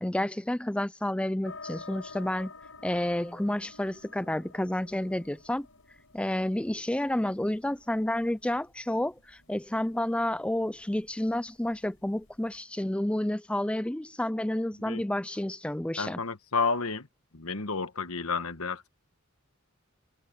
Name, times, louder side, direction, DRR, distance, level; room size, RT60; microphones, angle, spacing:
voice 1, 0.0-2.5 2.8-5.7 6.1-16.2, left 1 dB, 5° left, 0.4 m, -30 dB
sound 1, 1.4-12.6, left 3 dB, 65° left, 5.8 m, -51 dB
voice 2, 16.0-17.1 17.3-18.9, left 4 dB, 80° left, 1.4 m, -31 dB
head